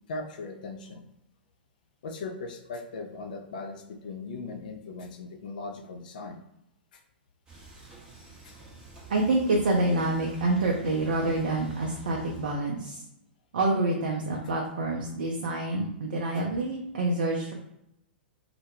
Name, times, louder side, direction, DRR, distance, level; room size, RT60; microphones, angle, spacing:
voice 1, 0.1-1.0 2.0-6.4 6.9-7.0 8.4-8.7, left 3 dB, 50° left, 5 dB, 0.4 m, -39 dB
sound 1, 7.5-12.6, right 3 dB, 15° right, 0.7 m, -47 dB
voice 2, 9.1-13.0 13.5-17.5, right 2 dB, 55° right, -1 dB, 0.4 m, -27 dB
2.1 x 2.1 x 2.9 m, 0.81 s
figure-of-eight pair, 105°, 6 cm